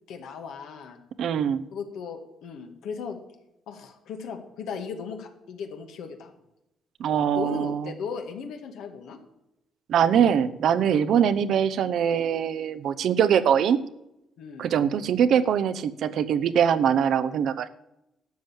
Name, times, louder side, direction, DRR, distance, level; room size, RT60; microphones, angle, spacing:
voice 1, 0.1-1.0 1.7-3.2 3.7-6.3 7.3-9.2 14.4-14.7, left 5 dB, 80° left, 5 dB, 1.7 m, -36 dB
voice 2, 1.2-1.6 7.0-7.9 9.9-13.8 14.6-17.7, right 8 dB, 70° right, 14 dB, 0.8 m, -22 dB
12.0 x 7.4 x 7.2 m, 0.87 s
cardioid pair, 90°, 0 cm